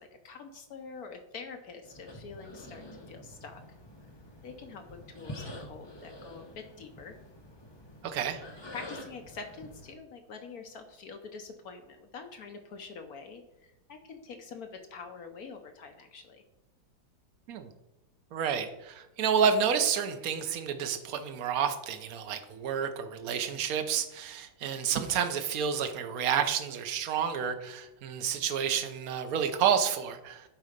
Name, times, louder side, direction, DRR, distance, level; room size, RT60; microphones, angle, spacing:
voice 1, 0.2-3.6 4.4-7.1 8.4-8.5 8.7-16.4, left 5 dB, 60° left, 6 dB, 1.0 m, -45 dB
sound 1, 1.8-9.9, left 1 dB, 25° left, 0.6 m, -47 dB
voice 2, 8.0-8.4 17.5-17.7 18.3-30.5, right 7 dB, 60° right, 8 dB, 1.1 m, -30 dB
10.5 x 4.0 x 5.1 m, 0.94 s
omnidirectional pair, 2.1 m